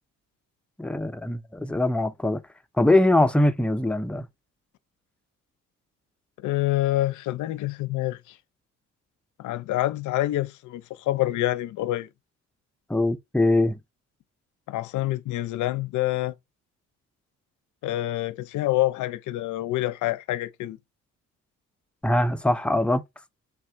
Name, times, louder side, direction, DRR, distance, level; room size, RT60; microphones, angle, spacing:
voice 1, 0.8-2.4 2.8-4.3 12.9-13.8 22.0-23.0, left 1 dB, 5° left, 0.4 m, -22 dB
voice 2, 6.4-8.2 9.4-12.1 14.7-16.3 17.8-20.8, left 15 dB, 75° left, 0.5 m, -27 dB
3.5 x 2.4 x 4.3 m
cardioid pair, 90°, 30 cm